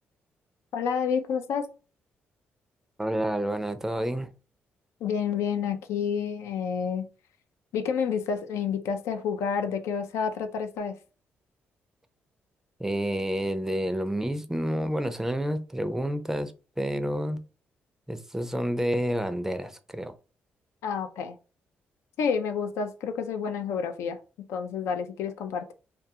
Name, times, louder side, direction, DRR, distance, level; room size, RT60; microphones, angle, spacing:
voice 1, 0.7-1.7 5.0-7.1 7.7-11.0 20.8-21.4 22.2-24.2 24.5-25.7, left 6 dB, 80° left, 0.4 m, -29 dB
voice 2, 3.0-4.3 12.8-16.5 16.8-17.4 18.1-20.1, equal, 10° right, 0.4 m, -29 dB
2.3 x 2.2 x 2.8 m
supercardioid pair, 60°, 5 cm